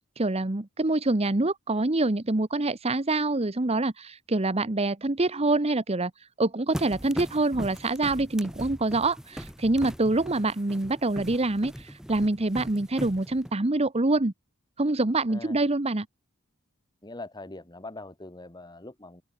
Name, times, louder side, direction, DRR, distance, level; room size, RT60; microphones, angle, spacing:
voice 1, 0.2-6.1 6.4-14.3 14.8-16.1, right 2 dB, 30° right, 1.0 m, -26 dB
sound 1, 6.7-13.5, equal, 5° right, 1.4 m, -40 dB
voice 2, 17.0-19.2, left 2 dB, 20° left, 1.6 m, -42 dB
open air
head